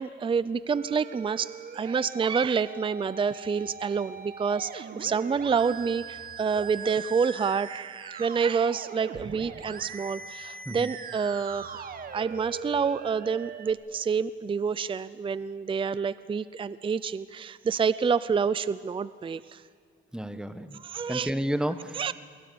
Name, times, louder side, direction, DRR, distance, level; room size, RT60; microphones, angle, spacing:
voice 1, 0.0-19.6 20.7-21.3 21.9-22.1, right 6 dB, 25° right, 16 dB, 0.5 m, -28 dB
Musical instrument, 0.7-13.7, right 6 dB, 45° right, 1.6 m, -41 dB
sound 1, 3.4-4.0 5.0-5.1 5.3-7.0 9.2-9.3 9.6-10.2 11.5-13.2, equal, 65° right, 5.0 m, -58 dB
voice 2, 20.1-20.8 21.1-22.1, equal, 5° right, 10 dB, 1.3 m, -31 dB
26.5 x 22.5 x 7.0 m, 2.1 s
cardioid pair, 90°, 20 cm